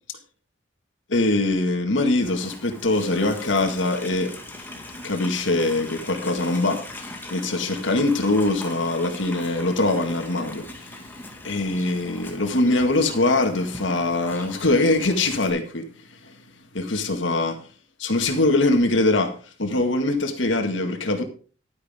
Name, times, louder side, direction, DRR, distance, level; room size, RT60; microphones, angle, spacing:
voice 1, 1.1-4.4 5.0-11.0 11.4-15.9 16.3-16.4 16.7-17.6 18.0-19.3 19.6-21.2, left 2 dB, 80° left, 1.9 m, -23 dB
Livestock farm animals working animals, 2.2-15.5, left 1 dB, 10° left, 2.0 m, -40 dB
11.5 x 9.7 x 3.6 m
head